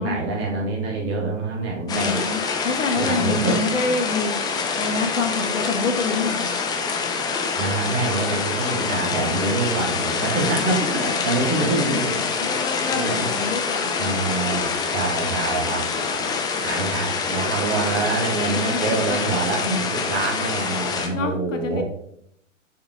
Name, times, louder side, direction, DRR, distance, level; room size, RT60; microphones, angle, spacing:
voice 1, 0.0-2.2 2.9-3.6 7.5-13.3 14.0-16.2 16.6-21.8, right 3 dB, 30° right, -2 dB, 2.7 m, -26 dB
voice 2, 1.9-4.3 4.8-6.5 10.2-10.3 11.9-12.0 12.4-14.1 15.3-15.8 16.4-16.8 21.1-21.8, left 4 dB, 70° left, 5 dB, 1.5 m, -27 dB
sound 1, 1.9-21.1, left 5 dB, 10° left, 0.6 m, -25 dB
6.7 x 5.4 x 4.0 m, 0.71 s
hypercardioid pair, 120°, 39 cm